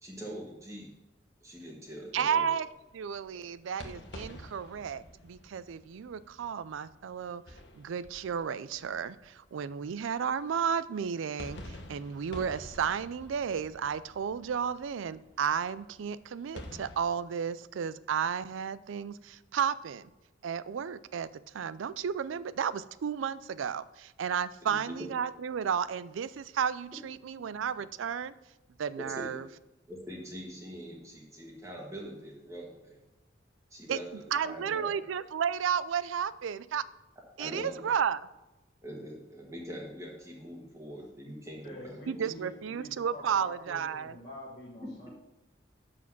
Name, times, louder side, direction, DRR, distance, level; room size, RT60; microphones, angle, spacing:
voice 1, 0.0-0.9 1.4-2.5 3.3-3.4 24.6-25.1 29.0-29.3 29.9-33.0 33.7-34.9 37.4-37.9 38.8-42.2, equal, 15° right, -1 dB, 1.4 m, -43 dB
sound 1, 2.1-10.5 11.0-17.0, left 1 dB, 70° left, 1.2 m, -49 dB
voice 2, 2.1-2.7 2.9-7.4 7.8-20.1 20.4-21.3 21.5-28.3 28.8-29.5 33.9-34.0 34.3-36.8 37.4-38.3 42.1-44.2, right 7 dB, 90° right, 17 dB, 0.4 m, -33 dB
voice 3, 41.6-45.1, left 1 dB, 35° left, -7 dB, 1.4 m, -47 dB
7.1 x 6.0 x 5.9 m, 0.98 s
head